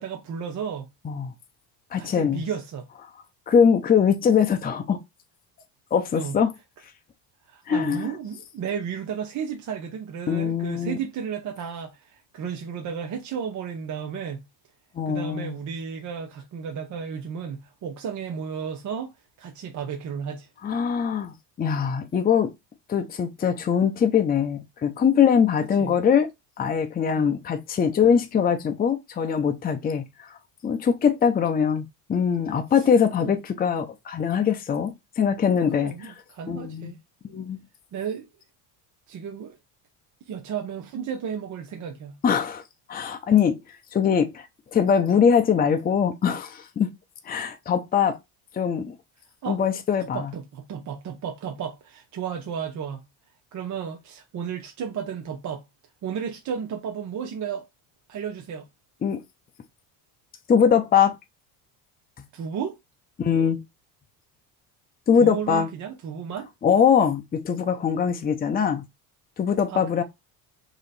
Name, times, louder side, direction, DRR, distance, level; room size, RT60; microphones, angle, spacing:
voice 1, 0.0-0.9 2.0-2.9 6.1-6.3 7.5-14.4 15.1-19.1 19.4-20.5 25.8-26.0 27.2-27.4 32.8-32.9 33.2-33.4 35.7-37.0 37.9-38.3 39.1-39.6 40.3-42.2 49.4-49.6 50.0-53.0 53.5-55.6 56.0-57.7 58.1-58.7 62.3-62.8 65.2-66.5 69.7-70.0, right 7 dB, 40° right, 0.7 m, -33 dB
voice 2, 1.9-2.4 3.5-5.0 5.9-6.5 7.7-8.1 10.3-11.0 15.0-15.6 20.6-22.5 22.9-26.3 26.6-30.4 30.6-36.1 36.5-36.9 37.2-37.6 42.2-42.6 42.9-43.6 43.9-44.5 44.7-46.9 47.3-48.2 48.5-48.9 49.5-50.3 59.0-59.2 60.5-61.1 63.2-63.6 65.1-65.7 66.6-68.9 69.4-70.0, left 7 dB, 20° left, 0.6 m, -22 dB
3.1 x 2.9 x 4.0 m
supercardioid pair, 105°, 45 cm